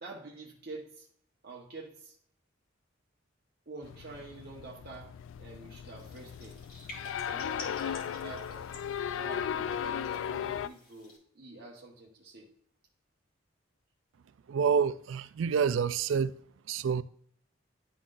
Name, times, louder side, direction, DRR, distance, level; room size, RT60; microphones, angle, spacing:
voice 1, 0.0-1.1 1.4-2.2 3.7-6.6 7.3-8.8 9.2-12.5, right 3 dB, 55° right, 1.0 m, -47 dB
sound 1, 3.8-10.7, left 8 dB, 70° left, 0.3 m, -36 dB
sound 2, 6.0-11.2, left 2 dB, 50° left, 2.0 m, -51 dB
voice 2, 14.5-16.3 16.7-17.0, right 6 dB, 75° right, 0.4 m, -27 dB
11.0 x 3.8 x 2.5 m
head